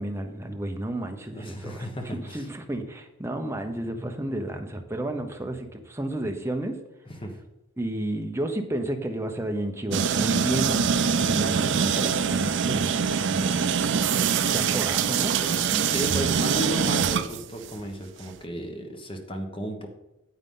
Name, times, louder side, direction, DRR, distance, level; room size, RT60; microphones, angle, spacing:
voice 1, 0.0-1.9 2.1-6.8 7.8-12.9 13.3-13.8 14.5-16.0, right 1 dB, 10° right, 4 dB, 0.7 m, -32 dB
voice 2, 1.3-2.5 7.1-7.3 15.9-19.9, equal, 25° left, 4 dB, 1.1 m, -34 dB
sound 1, 9.9-17.8, right 6 dB, 55° right, 0.4 m, -24 dB
9.4 x 8.0 x 3.8 m, 0.95 s
head